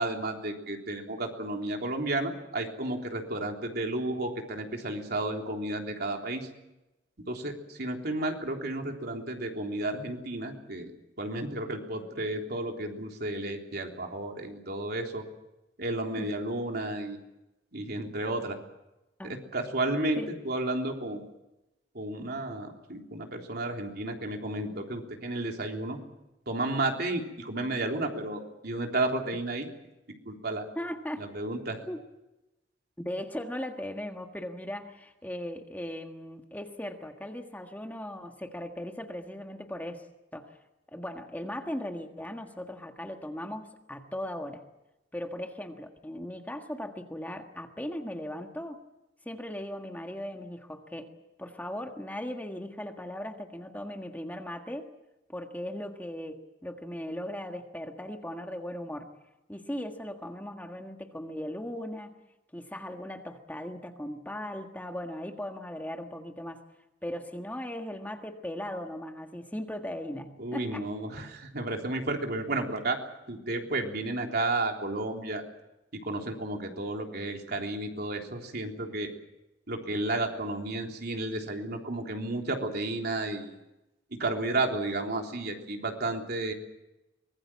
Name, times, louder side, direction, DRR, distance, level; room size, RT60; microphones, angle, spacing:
voice 1, 0.0-6.5 7.3-10.9 11.2-15.2 15.8-17.2 17.7-18.6 19.2-21.3 21.9-26.0 26.5-29.7 30.3-30.7 31.2-31.8 70.4-73.0 73.3-75.4 76.1-79.1 79.7-83.6 84.1-86.5, right 2 dB, 60° right, 2 dB, 3.5 m, -32 dB
voice 2, 30.7-31.2 31.9-32.0 33.0-40.1 40.3-40.6 40.9-44.6 45.1-48.8 49.2-51.1 51.4-54.9 55.3-59.1 59.5-62.2 62.5-66.6 67.0-70.8, left 1 dB, 10° left, 4 dB, 1.6 m, -38 dB
24.0 x 21.0 x 7.4 m, 0.97 s
head